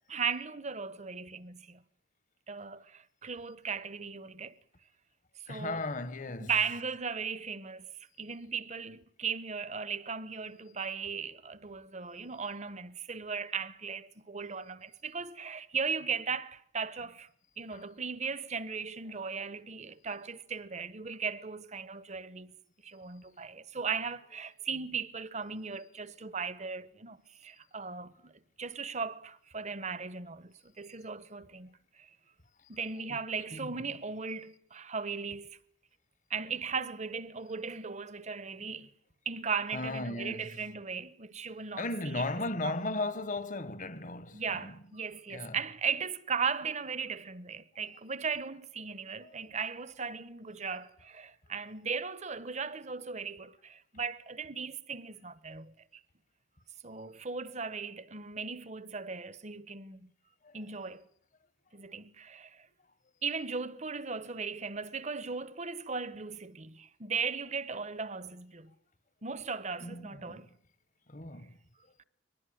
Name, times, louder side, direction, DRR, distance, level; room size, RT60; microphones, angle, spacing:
voice 1, 0.1-1.8 2.5-4.5 5.5-5.8 6.4-7.9 8.2-17.3 17.6-22.5 22.8-28.3 28.6-32.1 32.7-35.6 36.3-38.9 39.3-41.8 42.1-42.2 42.6-42.7 44.3-55.7 56.8-60.1 60.5-61.1 61.7-62.7 63.2-68.7 69.2-70.5, right 5 dB, 35° right, 1.0 m, -37 dB
voice 2, 5.5-6.5 10.7-10.8 17.7-17.8 19.0-19.6 32.6-32.7 33.1-33.2 33.5-33.9 39.7-40.7 41.7-44.9 45.3-45.6 49.2-49.6 60.4-60.6 69.8-70.5 71.1-71.6 71.8-71.9, left 2 dB, 40° left, 1.3 m, -37 dB
23.0 x 19.5 x 9.2 m
head